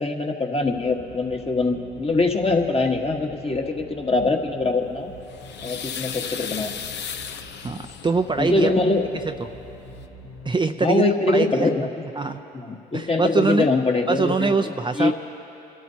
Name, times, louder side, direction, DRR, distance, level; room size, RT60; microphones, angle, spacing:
voice 1, 0.0-5.1 5.6-6.7 8.4-9.1 10.8-11.9 12.5-14.5 14.9-15.1, left 3 dB, 30° left, 2 dB, 1.5 m, -23 dB
sound 1, 0.6-10.5, left 1 dB, 85° left, 1.1 m, -45 dB
sound 2, 5.0-8.3 9.5-9.6 9.9-10.1, left 7 dB, 65° left, 0.8 m, -35 dB
voice 2, 7.5-8.7 10.4-11.7 12.2-12.4 12.9-13.7 14.1-15.1, right 4 dB, 25° right, 6 dB, 0.6 m, -23 dB
27.0 x 12.5 x 2.8 m, 2.8 s
hypercardioid pair, 55°, 20 cm